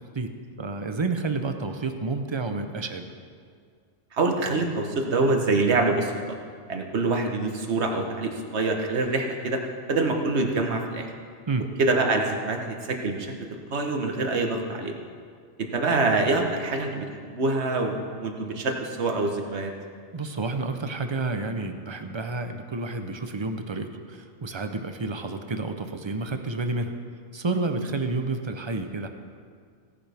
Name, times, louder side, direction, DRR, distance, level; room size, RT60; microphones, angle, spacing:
voice 1, 0.6-3.1 11.5-11.7 20.1-26.9 27.3-29.1, right 3 dB, 30° right, 7 dB, 0.5 m, -30 dB
voice 2, 4.1-6.1 6.7-9.6 9.9-11.1 11.8-14.9 15.6-19.7, right 3 dB, 65° right, 3 dB, 1.5 m, -25 dB
17.0 x 10.5 x 3.5 m, 2.2 s
omnidirectional pair, 1.3 m